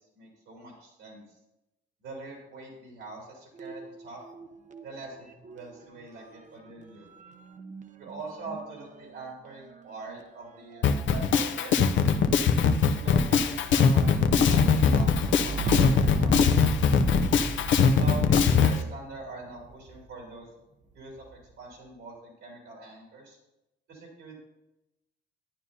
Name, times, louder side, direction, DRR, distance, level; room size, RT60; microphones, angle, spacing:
voice 1, 0.1-1.2 2.0-4.2 4.8-7.1 8.0-11.7 12.9-17.1 17.9-20.5 20.9-21.3 21.6-23.4 23.9-24.3, right 3 dB, 85° right, -2 dB, 3.3 m, -43 dB
sound 1, 3.5-4.9 5.2-20.2 21.0-21.5, right 3 dB, 40° right, 0.7 m, -38 dB
Drum kit, 10.8-18.8, left 6 dB, 70° left, 0.7 m, -21 dB
11.5 x 9.6 x 2.8 m, 0.92 s
cardioid pair, 90°, 20 cm